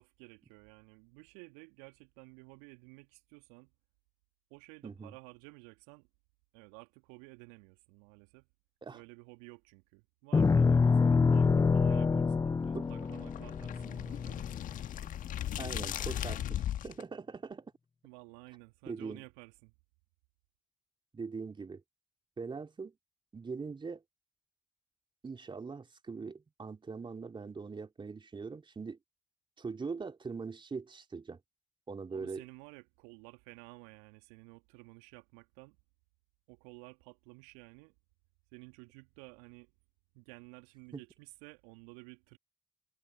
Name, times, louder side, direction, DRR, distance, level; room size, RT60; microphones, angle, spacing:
voice 1, 0.0-3.7 4.5-6.1 6.5-8.5 8.9-14.5 18.0-19.7 32.1-35.8 36.5-37.9 38.5-39.7 40.1-42.4, right 32 dB, 70° right, 2.6 m, -53 dB
voice 2, 4.8-5.1 8.8-9.0 12.7-12.8 15.6-17.7 18.8-19.2 21.1-21.8 22.4-22.9 23.3-24.0 25.2-29.0 29.6-31.4 31.9-32.4 40.9-41.0, right 4 dB, 30° right, 3.0 m, -42 dB
sound 1, 10.3-14.8, left 4 dB, 20° left, 0.5 m, -26 dB
sound 2, 11.3-17.0, left 11 dB, 55° left, 1.6 m, -38 dB
figure-of-eight pair, 45°, 16 cm